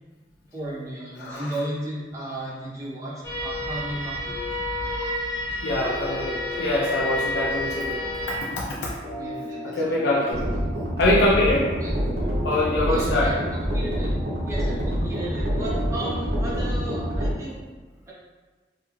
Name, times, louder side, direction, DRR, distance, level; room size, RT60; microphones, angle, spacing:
voice 1, 0.5-4.4 9.1-10.6 11.8-12.0 12.8-14.2 14.4-17.6 18.1-18.2, right 1 dB, 20° right, -6 dB, 0.5 m, -35 dB
voice 2, 1.2-1.5 5.6-8.0 8.3-8.9 9.6-10.4 11.0-11.7 12.4-13.3, left 1 dB, 80° left, -4 dB, 0.4 m, -24 dB
sound 1, 3.2-8.4, left 1 dB, 15° left, 0.7 m, -30 dB
sound 2, 5.8-17.2, left 1 dB, 35° right, 0.8 m, -39 dB
sound 3, 10.3-17.3, equal, 65° right, 0.6 m, -26 dB
2.3 x 2.1 x 3.0 m, 1.3 s
head